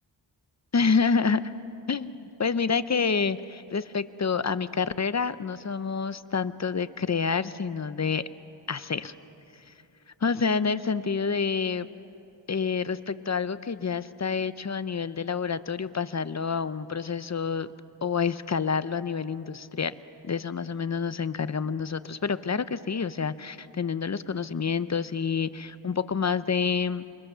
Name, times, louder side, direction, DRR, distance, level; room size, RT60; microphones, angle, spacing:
voice 1, 0.7-1.5 1.9-8.2 8.7-9.1 10.2-11.9 12.5-17.7 18.0-19.9 20.2-27.0, left 5 dB, 40° left, 14 dB, 0.7 m, -28 dB
28.0 x 23.5 x 6.8 m, 2.8 s
wide cardioid pair, 115°, 44 cm